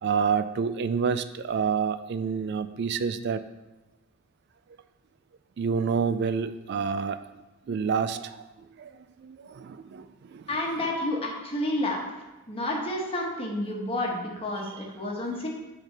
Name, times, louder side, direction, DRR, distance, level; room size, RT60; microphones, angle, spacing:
voice 1, 0.0-3.4 5.6-7.2 7.7-8.4 8.8-8.9 9.2-10.0 10.3-10.4, right 6 dB, 50° right, 12 dB, 0.3 m, -28 dB
voice 2, 10.5-12.0 12.5-15.5, left 1 dB, 25° left, -1 dB, 1.2 m, -30 dB
7.2 x 5.1 x 3.9 m, 1.1 s
head